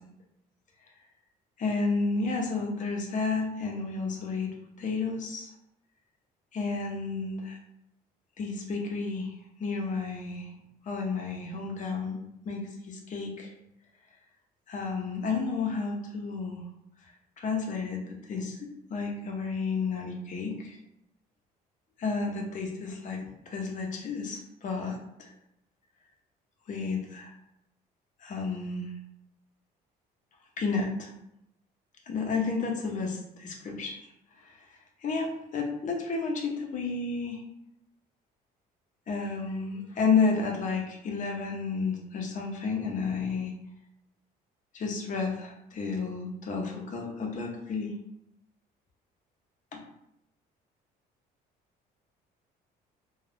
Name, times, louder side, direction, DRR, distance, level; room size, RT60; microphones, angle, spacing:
voice 1, 1.6-4.5 4.8-5.5 6.5-7.6 8.4-9.3 9.6-10.5 10.9-12.2 12.5-13.5 14.7-16.6 17.0-20.8 22.0-23.2 23.5-25.3 26.7-27.3 28.2-28.9 30.6-31.1 32.1-34.1 34.4-34.6 35.0-37.4 39.1-43.5 44.7-47.9 49.7-49.8, left 4 dB, 50° left, 1 dB, 0.7 m, -31 dB
2.4 x 2.3 x 3.3 m, 0.79 s
cardioid pair, 110°, 17 cm